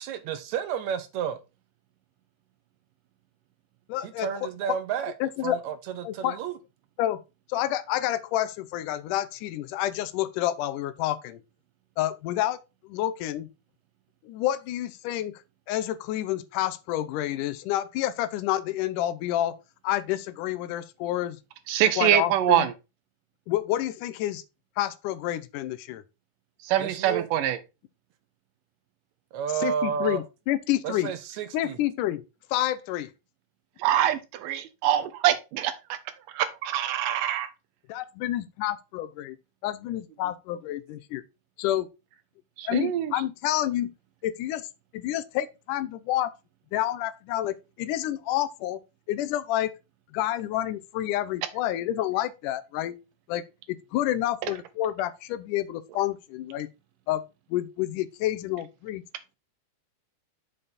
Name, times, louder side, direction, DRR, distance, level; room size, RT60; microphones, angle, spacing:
voice 1, 0.0-1.4 4.0-5.1 5.4-6.5 26.8-27.3 29.3-30.2 30.8-31.8, right 8 dB, 70° right, 1.9 m, -31 dB
voice 2, 3.9-4.5 5.2-5.6 6.0-6.4 7.0-7.2 7.5-11.4 12.0-12.6 12.8-13.5 14.2-15.4 15.7-19.6 19.8-21.4 22.0-22.7 23.5-24.4 24.8-26.0 29.6-31.1 31.5-32.2 32.5-33.1 37.9-39.4 39.6-41.2 41.6-41.9 42.7-43.9 44.2-44.7 44.9-46.3 46.7-48.8 49.1-49.7 50.1-53.0 53.3-53.4 53.7-56.7 57.1-57.2 57.5-59.0, left 13 dB, 85° left, 2.2 m, -29 dB
voice 3, 21.7-22.7 26.6-27.6 33.8-36.0 36.4-37.5 42.6-43.1, right 11 dB, 90° right, 2.5 m, -24 dB
7.0 x 5.5 x 4.0 m
omnidirectional pair, 3.7 m